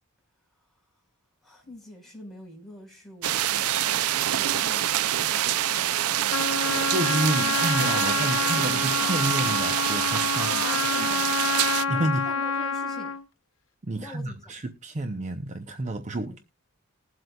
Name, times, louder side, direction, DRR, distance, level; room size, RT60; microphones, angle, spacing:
voice 1, 1.4-6.9 7.4-9.6 10.3-11.4 11.9-13.1 13.9-14.5 16.2-16.4, left 1 dB, ahead, 4.6 m, -44 dB
sound 1, 3.2-11.9, right 12 dB, 80° right, 0.4 m, -26 dB
Trumpet, 6.3-13.2, left 5 dB, 65° left, 0.8 m, -28 dB
voice 2, 6.9-10.6 10.9-11.0 11.9-12.3 13.8-16.4, right 1 dB, 35° right, 0.6 m, -30 dB
20.5 x 7.8 x 2.3 m
head